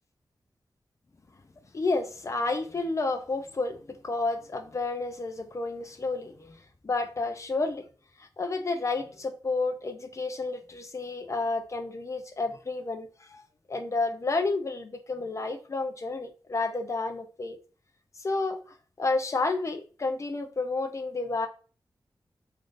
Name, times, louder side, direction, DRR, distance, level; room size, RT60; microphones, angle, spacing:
voice 1, 1.7-7.9 8.2-13.4 13.7-17.6 18.2-18.6 19.0-21.5, left 3 dB, 40° left, 0.5 m, -31 dB
3.5 x 2.5 x 2.5 m
wide cardioid pair, 105°, 8 cm